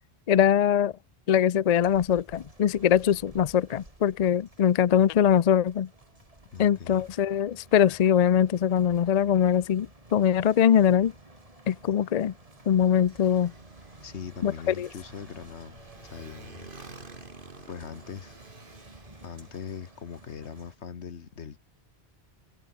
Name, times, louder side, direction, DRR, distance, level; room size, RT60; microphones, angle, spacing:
voice 1, 0.3-0.9 1.3-5.9 6.6-11.1 11.7-12.3 12.7-13.5 14.4-14.9, left 9 dB, 50° left, 0.5 m, -22 dB
sound 1, 1.8-20.8, right 2 dB, 30° right, 3.4 m, -53 dB
voice 2, 6.5-7.0 14.0-16.7 17.7-18.4 19.2-21.6, left 6 dB, 75° left, 1.6 m, -41 dB
Motorcycle, 10.8-20.7, right 3 dB, 50° right, 2.7 m, -52 dB
omnidirectional pair, 1.2 m